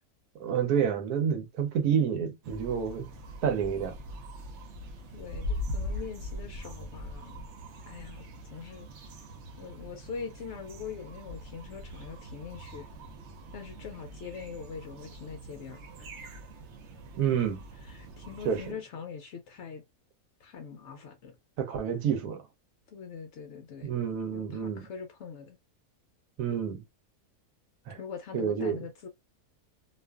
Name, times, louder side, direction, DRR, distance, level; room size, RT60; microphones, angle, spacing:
voice 1, 0.4-3.0 3.4-4.0 17.1-17.6 18.4-18.6 21.6-22.4 23.8-24.9 26.4-26.8 27.9-28.0 28.3-28.8, right 7 dB, 90° right, 1.2 m, -28 dB
sound 1, 2.4-18.7, left 1 dB, 60° right, 0.8 m, -42 dB
voice 2, 5.1-7.4 7.9-8.9 9.6-12.9 13.5-16.4 17.8-19.8 20.4-21.4 22.9-23.9 24.3-25.6 28.0-29.1, left 6 dB, 65° left, 0.7 m, -43 dB
2.6 x 2.4 x 2.2 m
omnidirectional pair, 1.6 m